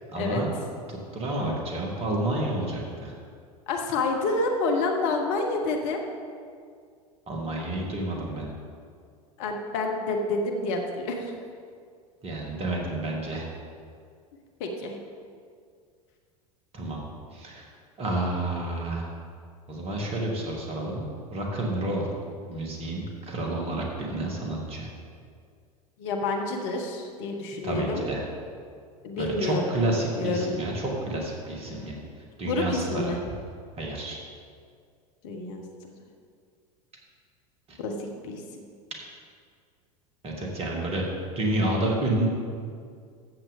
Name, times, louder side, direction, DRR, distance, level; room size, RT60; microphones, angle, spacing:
voice 1, 0.1-0.5 0.9-3.1 7.3-8.5 12.2-13.5 16.7-17.0 17.3-17.7 18.0-19.1 19.7-22.1 22.5-24.9 27.6-28.2 29.2-32.0 32.4-33.1 33.8-34.2 37.7-37.8 40.2-41.1 41.4-42.3, right 1 dB, 30° right, -1 dB, 2.2 m, -29 dB
voice 2, 3.7-6.0 9.4-11.3 14.6-15.0 26.0-28.0 29.0-29.8 30.2-30.5 32.4-33.2 35.2-35.6 37.8-38.6, left 2 dB, 50° left, 2 dB, 1.2 m, -28 dB
13.5 x 7.7 x 3.7 m, 2.2 s
figure-of-eight pair, 80°, 20 cm